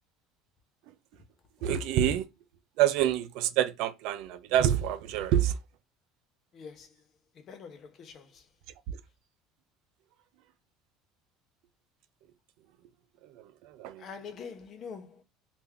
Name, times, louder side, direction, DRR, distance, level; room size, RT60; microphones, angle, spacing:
voice 1, 1.6-2.3 2.8-5.6 8.9-9.0 13.3-14.0, right 11 dB, 70° right, 0.5 m, -27 dB
voice 2, 6.5-7.1 7.3-8.5 14.0-15.2, left 6 dB, 45° left, 0.8 m, -45 dB
3.5 x 2.5 x 3.4 m
supercardioid pair, 120°, 0 cm